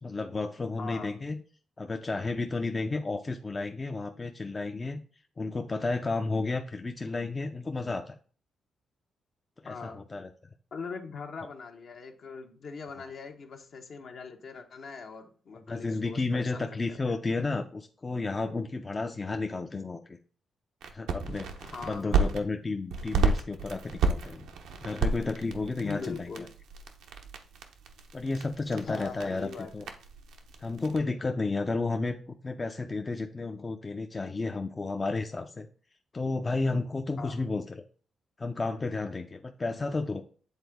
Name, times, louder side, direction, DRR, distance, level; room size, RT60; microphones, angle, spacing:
voice 1, 0.0-1.4 1.8-5.0 5.4-8.2 9.6-10.3 15.7-20.2 20.9-21.5 21.8-24.5 24.8-26.5 28.1-29.9 30.6-35.7 36.1-37.8 38.4-40.2, left 3 dB, 25° left, 5 dB, 0.5 m, -32 dB
voice 2, 0.8-1.2 9.7-10.0 10.7-17.2 21.6-22.3 25.8-26.5 28.7-29.9 37.2-37.5, left 5 dB, 60° left, 4 dB, 1.0 m, -41 dB
sound 1, 20.8-22.4 22.9-31.0, right 4 dB, 90° right, 0.8 m, -32 dB
8.0 x 3.8 x 3.5 m, 0.42 s
cardioid pair, 90°, 0 cm